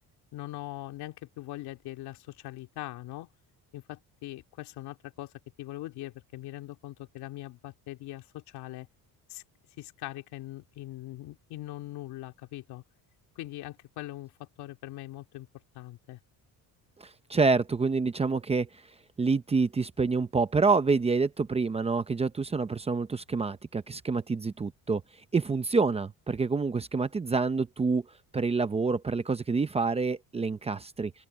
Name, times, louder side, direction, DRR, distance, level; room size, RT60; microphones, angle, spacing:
voice 1, 0.3-3.3 3.7-5.3 5.6-8.9 9.3-9.4 9.8-12.8 13.4-15.5 15.7-16.2, left 16 dB, 80° left, 2.5 m, -41 dB
voice 2, 17.0-18.7 19.2-25.0 25.3-28.0 28.3-31.1, right 4 dB, 15° right, 0.7 m, -27 dB
open air
cardioid pair, 155°, 38 cm